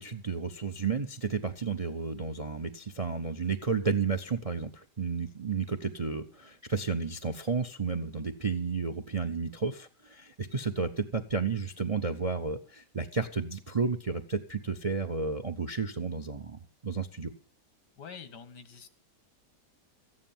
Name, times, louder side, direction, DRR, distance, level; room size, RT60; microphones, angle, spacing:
voice 1, 0.0-17.3, right 5 dB, 40° right, 11 dB, 0.5 m, -32 dB
voice 2, 18.0-18.9, left 6 dB, 80° left, 12 dB, 2.1 m, -46 dB
14.0 x 9.8 x 7.2 m, 0.42 s
omnidirectional pair, 1.8 m